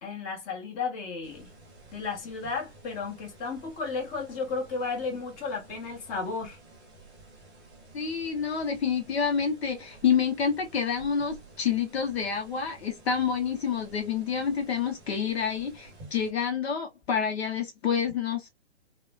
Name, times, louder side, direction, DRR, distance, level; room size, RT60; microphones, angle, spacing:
voice 1, 0.0-1.5 1.9-6.6, left 4 dB, 20° left, 1.1 m, -33 dB
sound 1, 1.2-16.3, right 3 dB, 10° right, 0.3 m, -52 dB
voice 2, 7.9-18.5, left 7 dB, 60° left, 0.7 m, -28 dB
3.0 x 2.1 x 2.2 m
figure-of-eight pair, 125°, 35 cm